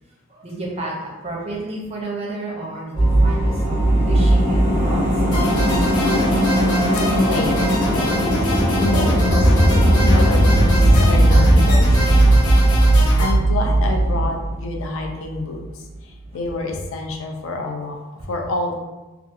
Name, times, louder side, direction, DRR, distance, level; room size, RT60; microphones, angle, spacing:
voice 1, 0.3-5.7 13.9-14.1, right 2 dB, 30° right, -3 dB, 0.5 m, -32 dB
sound 1, 2.9-15.4 15.6-15.7, right 1 dB, 55° left, 0.9 m, -17 dB
sound 2, 5.3-13.3, left 2 dB, 90° left, 0.9 m, -27 dB
voice 2, 7.1-8.4 8.8-9.5 10.0-12.3 13.2-15.8 16.3-18.0 18.3-18.8, left 2 dB, 70° left, 2 dB, 0.4 m, -28 dB
2.7 x 2.3 x 2.4 m, 1.1 s
head